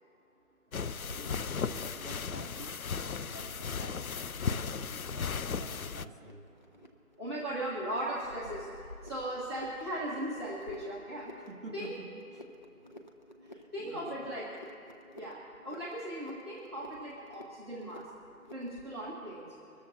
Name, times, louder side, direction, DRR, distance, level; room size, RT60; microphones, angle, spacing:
sound 1, 0.7-6.1, left 6 dB, 65° left, 0.6 m, -36 dB
voice 1, 0.7-6.5 11.5-12.6 13.5-14.4, right 2 dB, 55° right, 2 dB, 2.6 m, -50 dB
sound 2, 1.0-18.9, left 1 dB, 30° left, 0.8 m, -53 dB
voice 2, 7.2-11.3 11.7-12.0 13.4-14.5 15.2-18.1 18.5-19.5, right 1 dB, 15° right, -11 dB, 1.7 m, -38 dB
24.5 x 13.5 x 2.8 m, 2.9 s
figure-of-eight pair, 160°, 46 cm